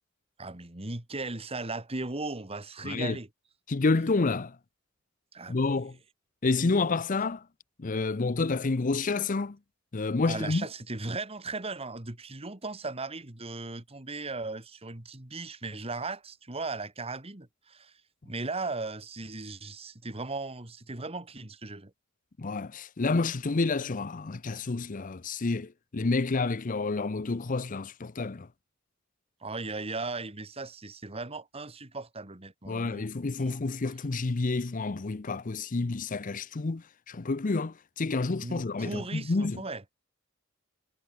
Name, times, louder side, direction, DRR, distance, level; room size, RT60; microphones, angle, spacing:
voice 1, 0.4-3.3 5.3-5.6 10.3-17.9 18.3-21.9 29.4-33.1 33.4-33.6 38.4-39.8, right 3 dB, 30° right, 2.0 m, -37 dB
voice 2, 2.8-3.2 3.7-4.6 5.5-6.0 6.4-7.5 7.8-9.6 9.9-10.7 22.4-28.5 32.7-39.6, left 3 dB, 40° left, 0.6 m, -29 dB
head